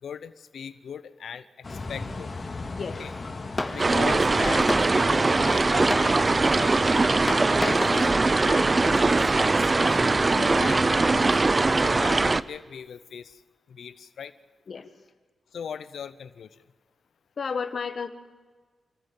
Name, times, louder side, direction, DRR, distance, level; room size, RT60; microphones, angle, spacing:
voice 1, 0.0-2.3 3.0-3.1 3.7-7.2 7.6-10.8 11.1-11.4 11.7-13.4 13.7-14.3 15.5-16.5, left 7 dB, 80° left, 14 dB, 0.7 m, -39 dB
sound 1, 1.6-6.6, left 3 dB, 45° left, 2.3 m, -38 dB
Fireworks, 2.3-11.7, left 2 dB, 25° left, 1.7 m, -37 dB
sound 2, 3.8-12.4, right 3 dB, 40° right, 0.6 m, -21 dB
voice 2, 7.6-8.2 10.3-10.5 14.7-14.9 17.4-18.1, left 5 dB, 65° left, 9 dB, 1.4 m, -33 dB
25.5 x 14.0 x 7.4 m, 1.4 s
supercardioid pair, 45°, 0 cm